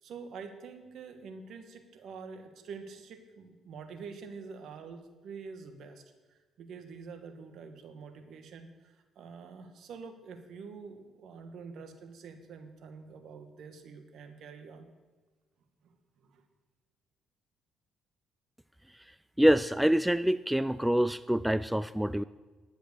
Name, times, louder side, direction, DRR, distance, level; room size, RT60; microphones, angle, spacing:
voice 1, 0.0-6.0 6.3-14.8 16.2-16.4, right 5 dB, 70° right, 6 dB, 1.5 m, -46 dB
voice 2, 19.4-22.2, equal, 5° right, 15 dB, 0.3 m, -25 dB
10.5 x 7.9 x 6.7 m, 1.3 s
cardioid pair, 90°, 0 cm